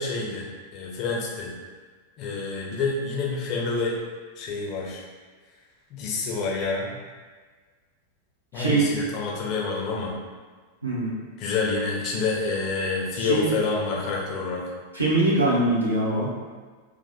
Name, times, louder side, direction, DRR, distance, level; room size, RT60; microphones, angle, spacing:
voice 1, 0.0-1.5 2.2-3.9 4.4-5.0 5.9-7.0 8.5-10.1 11.4-14.6, left 4 dB, 40° left, -3 dB, 0.8 m, -28 dB
voice 2, 8.5-8.9 10.8-11.1 13.2-13.5 14.9-16.3, right 2 dB, 85° right, -7 dB, 0.8 m, -22 dB
2.9 x 2.2 x 4.1 m, 1.4 s
figure-of-eight pair, 90°, 0 cm